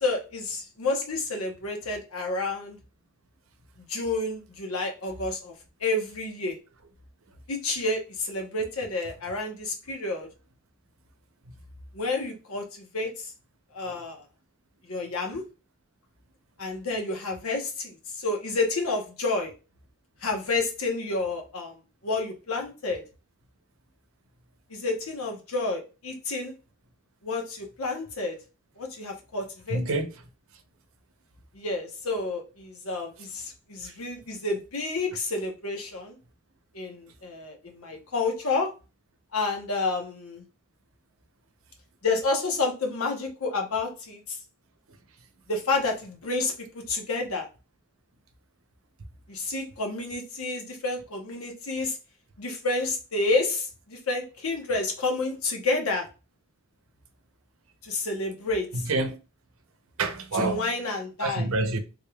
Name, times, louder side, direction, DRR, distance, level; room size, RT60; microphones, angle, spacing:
voice 1, 0.0-2.8 3.9-5.5 5.8-6.6 7.5-10.3 11.9-13.3 13.7-14.2 14.9-15.4 16.6-19.5 20.2-21.7 22.0-23.0 24.7-26.5 27.2-28.4 28.8-29.8 31.5-36.2 36.7-38.7 39.3-40.4 42.0-44.4 45.5-47.5 49.3-52.0 52.4-56.1 57.8-58.9 60.4-61.5, left 3 dB, 85° left, 1.0 m, -30 dB
voice 2, 29.7-30.1 58.7-59.2 60.0-60.7 61.2-61.8, right 2 dB, 75° right, 0.7 m, -27 dB
3.6 x 3.4 x 2.3 m
head